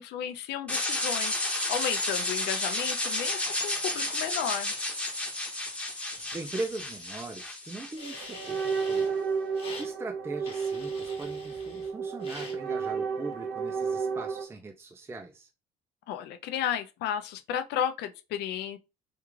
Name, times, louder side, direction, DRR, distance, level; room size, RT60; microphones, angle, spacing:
voice 1, 0.0-4.7 16.1-18.8, left 9 dB, 80° left, 0.5 m, -33 dB
sound 1, 0.7-8.7, left 1 dB, 5° left, 0.8 m, -32 dB
sound 2, 6.1-7.4 7.9-9.1 9.5-9.9 10.4-11.9 12.2-12.6, left 3 dB, 35° left, 1.1 m, -46 dB
voice 2, 6.3-9.2 9.7-15.5, right 3 dB, 15° right, 0.4 m, -40 dB
sound 3, 8.0-14.5, right 5 dB, 85° right, 0.6 m, -32 dB
3.4 x 2.4 x 3.0 m
cardioid pair, 110°, 17 cm